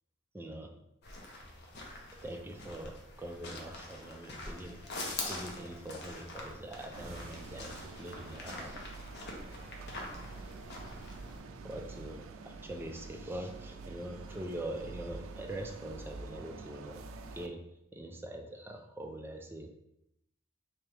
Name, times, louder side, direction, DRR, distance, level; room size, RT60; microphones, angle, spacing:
voice 1, 0.3-0.7 2.1-4.8 5.3-8.8 11.6-17.6 17.9-19.7, right 1 dB, 10° right, 3 dB, 0.4 m, -43 dB
sound 1, 1.0-11.4, left 2 dB, 55° left, 0.7 m, -44 dB
sound 2, 4.5-8.2 8.5-9.5 9.8-9.9, left 4 dB, 85° left, 1.1 m, -63 dB
sound 3, 6.9-17.5, right 3 dB, 90° right, 0.4 m, -47 dB
3.5 x 2.9 x 3.3 m, 0.81 s
head